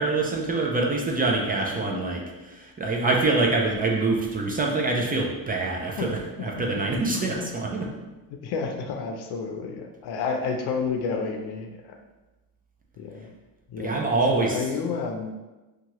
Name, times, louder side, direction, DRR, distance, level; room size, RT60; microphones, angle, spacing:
voice 1, 0.0-7.9 13.8-14.6, right 3 dB, 25° right, -1 dB, 0.4 m, -25 dB
voice 2, 8.3-11.9 13.0-13.3 13.7-15.3, left 5 dB, 75° left, 3 dB, 0.6 m, -31 dB
2.8 x 2.3 x 2.9 m, 1.1 s
cardioid pair, 115°, 39 cm